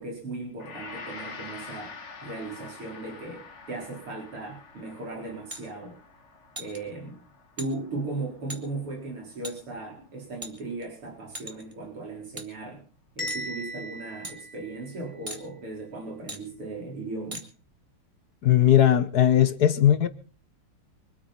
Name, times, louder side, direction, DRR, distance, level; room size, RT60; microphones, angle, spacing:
voice 1, 0.0-1.9 2.2-6.0 6.6-7.2 7.6-12.8 13.2-17.4, right 2 dB, 80° right, 5.3 m, -37 dB
Gong, 0.6-9.8, left 4 dB, 35° left, 1.8 m, -46 dB
sound 1, 5.5-5.6 6.5-6.8 7.6-7.7 8.5-8.6 9.4-9.6 10.4-10.8 11.3-11.7 12.4-12.5 13.3-13.5 14.2-14.4 15.3-15.4 16.3-16.4 17.3-17.4, right 1 dB, 15° right, 2.2 m, -38 dB
Bell, 13.2-15.2, equal, 15° left, 3.5 m, -38 dB
voice 2, 18.4-20.1, left 11 dB, 55° left, 1.3 m, -19 dB
24.5 x 9.0 x 5.8 m
omnidirectional pair, 2.4 m